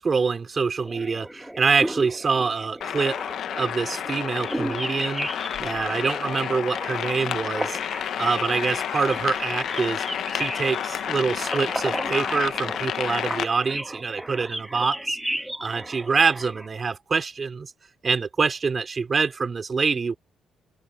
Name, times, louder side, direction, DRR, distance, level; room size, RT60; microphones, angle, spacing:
voice 1, 0.0-3.2 3.5-5.3 5.6-7.8 8.2-10.0 10.3-15.2 15.6-17.7 18.0-20.2, right 5 dB, 35° right, 3.2 m, -25 dB
sound 1, 0.8-16.7, right 1 dB, 5° right, 1.5 m, -35 dB
sound 2, 2.8-13.5, left 10 dB, 70° left, 1.0 m, -30 dB
open air
cardioid pair, 90°, 0 cm